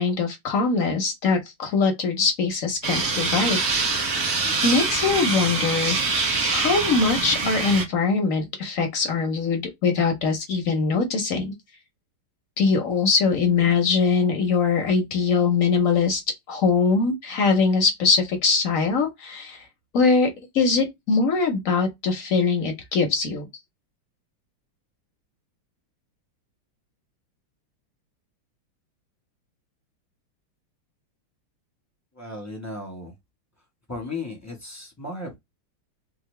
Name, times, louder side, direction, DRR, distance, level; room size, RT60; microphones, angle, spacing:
voice 1, 0.0-3.6 3.8-4.1 4.4-6.2 6.5-11.5 12.6-16.2 16.5-19.7 19.9-20.3 20.5-23.4, left 4 dB, 60° left, 0.9 m, -22 dB
sound 1, 2.8-7.8, right 4 dB, 50° right, 0.9 m, -24 dB
voice 2, 32.1-33.1 33.9-35.3, left 2 dB, 10° left, 0.7 m, -35 dB
3.8 x 2.1 x 3.1 m
omnidirectional pair, 2.3 m